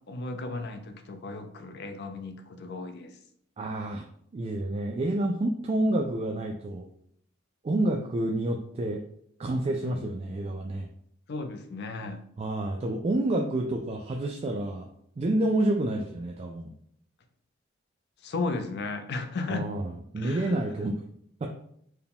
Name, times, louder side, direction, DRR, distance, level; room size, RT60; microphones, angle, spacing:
voice 1, 0.1-3.1 9.8-10.1 11.3-12.2 18.2-19.7 20.2-20.6, left 3 dB, 55° left, 7 dB, 0.5 m, -35 dB
voice 2, 3.6-4.0 4.3-6.9 7.6-9.0 9.4-10.9 12.4-14.9 15.2-16.7 19.5-21.0 21.4-21.5, right 1 dB, 30° right, 2 dB, 0.3 m, -29 dB
4.6 x 2.2 x 3.4 m, 0.68 s
head